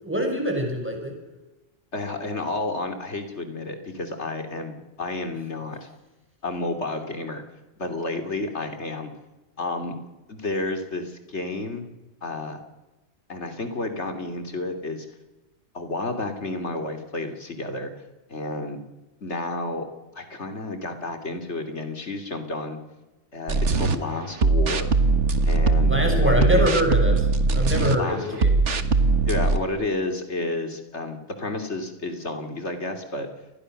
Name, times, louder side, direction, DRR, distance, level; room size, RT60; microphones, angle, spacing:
voice 1, 0.0-1.1 25.9-28.6, equal, 10° right, 1 dB, 7.1 m, -24 dB
voice 2, 1.9-5.9 6.4-7.4 7.8-9.1 9.6-10.0 10.3-11.9 12.2-12.6 13.3-15.0 15.7-17.9 18.3-18.8 19.2-19.9 20.1-22.8 23.3-24.9 25.4-26.7 27.9-28.4 29.3-33.3, left 2 dB, 75° left, 6 dB, 3.4 m, -31 dB
sound 1, 23.5-24.0 24.4-28.0 28.4-29.6, right 3 dB, 90° right, 1.8 m, -20 dB
29.0 x 21.0 x 6.7 m, 1.1 s
omnidirectional pair, 1.2 m